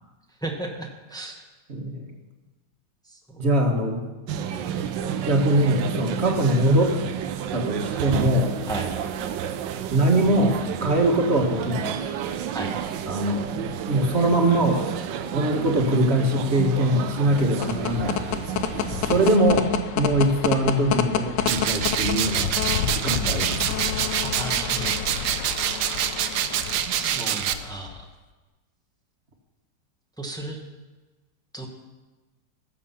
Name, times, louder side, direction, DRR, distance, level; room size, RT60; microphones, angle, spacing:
voice 1, 0.4-1.4 3.1-3.4 8.7-8.9 12.5-12.7 18.9-19.2 24.2-24.9 27.0-27.9 30.2-30.6 31.5-31.7, right 2 dB, 5° left, 2 dB, 1.0 m, -34 dB
voice 2, 1.7-2.0 3.4-4.0 5.2-7.0 7.5-8.6 9.9-12.0 13.1-14.8 15.3-18.2 19.0-19.7 19.9-22.5 22.9-23.8, right 1 dB, 40° right, 2 dB, 1.8 m, -22 dB
sound 1, 4.3-19.4, right 9 dB, 85° right, 1.4 m, -31 dB
sound 2, 17.2-28.0, left 8 dB, 85° left, 1.4 m, -29 dB
sound 3, 21.4-27.5, right 10 dB, 70° right, 1.1 m, -26 dB
14.5 x 7.5 x 5.7 m, 1.2 s
omnidirectional pair, 1.9 m